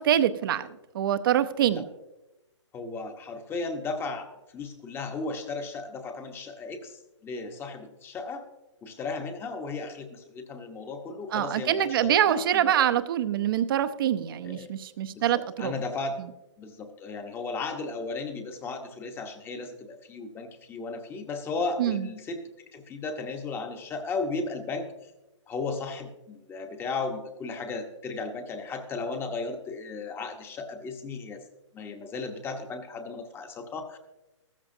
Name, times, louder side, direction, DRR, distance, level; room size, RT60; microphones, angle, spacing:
voice 1, 0.0-1.9 11.3-15.7 16.2-16.3 21.8-22.1, right 10 dB, 45° right, 11 dB, 0.7 m, -25 dB
voice 2, 2.7-8.4 8.8-12.8 14.4-14.7 15.1-16.2 16.6-22.4 22.7-24.9 25.5-31.4 31.7-34.0, left 3 dB, 15° left, 6 dB, 1.0 m, -35 dB
14.5 x 13.5 x 2.7 m, 1.0 s
hypercardioid pair, 135°, 16 cm